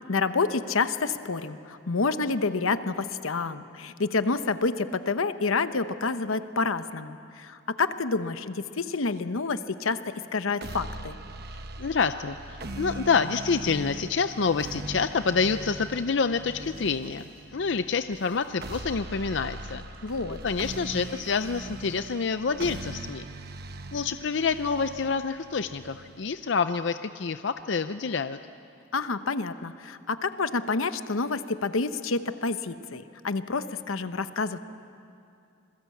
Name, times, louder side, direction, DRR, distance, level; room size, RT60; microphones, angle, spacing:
voice 1, 0.1-10.0 10.3-11.2 20.0-20.4 28.9-34.6, left 4 dB, 85° left, 11 dB, 0.9 m, -28 dB
sound 1, 10.6-26.6, right 2 dB, 50° right, 1.1 m, -41 dB
voice 2, 11.5-19.8 20.4-23.2 23.9-28.4, left 5 dB, 60° left, 11 dB, 0.5 m, -27 dB
Squeak / Writing, 16.6-17.5 18.1-19.0 19.5-21.7, right 1 dB, 75° right, 6.5 m, -53 dB
27.0 x 22.0 x 8.4 m, 2.6 s
head